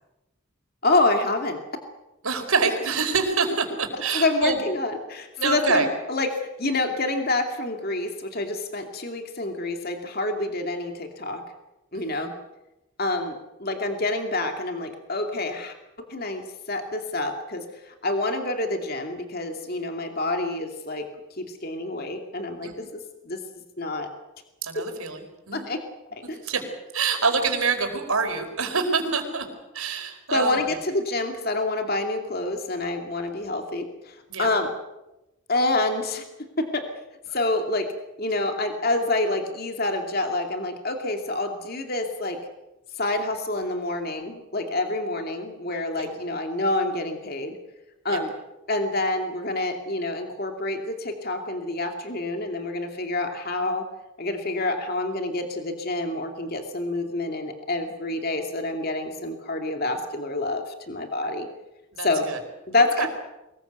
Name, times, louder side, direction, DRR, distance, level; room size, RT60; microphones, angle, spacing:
voice 1, 0.8-1.6 4.1-11.4 11.9-12.3 13.0-13.3 13.6-15.7 16.1-21.1 21.4-22.8 23.2-23.4 23.8-24.1 25.5-25.8 26.1-26.4 30.3-34.7 35.5-36.2 36.6-36.8 37.3-37.9 38.2-42.4 43.0-47.6 48.0-48.3 48.7-53.9 54.2-61.5 62.0-62.3 62.7-63.1, left 2 dB, 45° left, 4 dB, 2.5 m, -27 dB
voice 2, 2.2-4.6 5.4-5.9 11.9-12.3 22.6-22.9 24.6-25.7 26.2-26.6 26.9-29.5 29.7-30.8 34.3-34.5 37.3-37.4 46.0-46.1 48.1-48.2 61.9-62.4 63.0-63.1, right 4 dB, 90° right, 5 dB, 4.8 m, -26 dB
24.5 x 20.5 x 8.1 m, 0.96 s
head